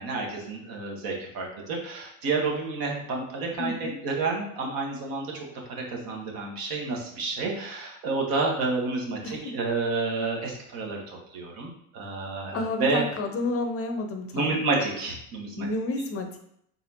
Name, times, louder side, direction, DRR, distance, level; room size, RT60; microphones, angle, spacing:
voice 1, 0.0-3.7 4.0-5.3 5.7-13.0 14.3-15.7, right 3 dB, 55° right, -1 dB, 1.4 m, -30 dB
voice 2, 3.6-4.0 9.2-9.5 12.5-14.6 15.6-16.4, left 2 dB, 35° left, 6 dB, 0.6 m, -30 dB
4.0 x 3.9 x 2.8 m, 0.72 s
hypercardioid pair, 75°, 41 cm